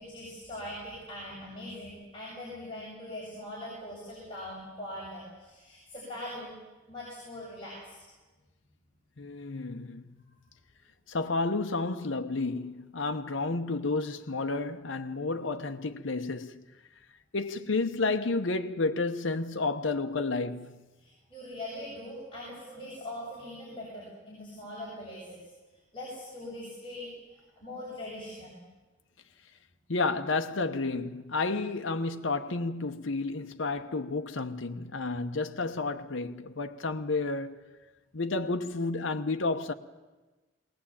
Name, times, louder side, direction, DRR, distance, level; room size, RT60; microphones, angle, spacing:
voice 1, 0.0-6.6 6.9-8.0 21.0-25.5 25.9-27.1 27.6-28.6, left 1 dB, 25° left, 7.1 m, -41 dB
voice 2, 9.2-10.2 11.1-16.6 17.3-20.8 29.9-37.6 38.1-39.7, left 3 dB, 80° left, 0.9 m, -31 dB
21.0 x 18.5 x 8.6 m
head